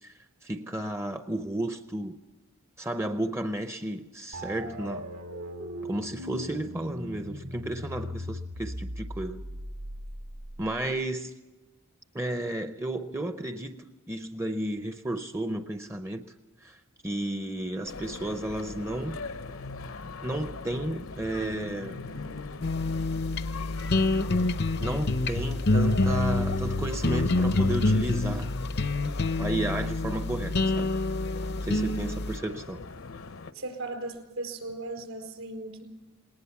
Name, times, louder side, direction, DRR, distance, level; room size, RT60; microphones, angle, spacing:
voice 1, 0.0-2.2 2.8-5.1 5.9-9.4 10.6-11.3 12.1-16.3 16.6-19.2 20.2-22.0 24.8-28.6 29.4-30.9 31.6-32.8, right 1 dB, 10° right, 8 dB, 0.5 m, -33 dB
sound 1, 4.3-11.0, equal, 90° right, 2.4 m, -39 dB
sound 2, 17.9-33.5, left 3 dB, 70° left, 0.8 m, -41 dB
sound 3, 22.6-32.4, left 2 dB, 50° left, 0.6 m, -27 dB
voice 2, 33.5-35.8, right 2 dB, 70° right, 4 dB, 4.4 m, -37 dB
20.0 x 19.0 x 7.2 m, 1.2 s
head